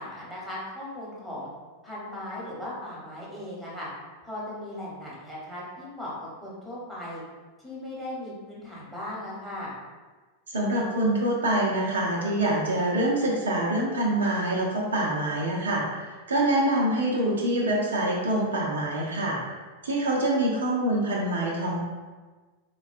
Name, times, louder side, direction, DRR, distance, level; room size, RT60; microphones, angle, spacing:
voice 1, 0.0-1.5 1.8-3.9 4.2-7.2 7.6-9.7, left 1 dB, 5° right, -6 dB, 1.1 m, -37 dB
voice 2, 10.5-19.4 19.8-21.8, right 1 dB, 70° right, -3 dB, 0.5 m, -25 dB
3.9 x 2.2 x 2.4 m, 1.3 s
figure-of-eight pair, 90°, 0 cm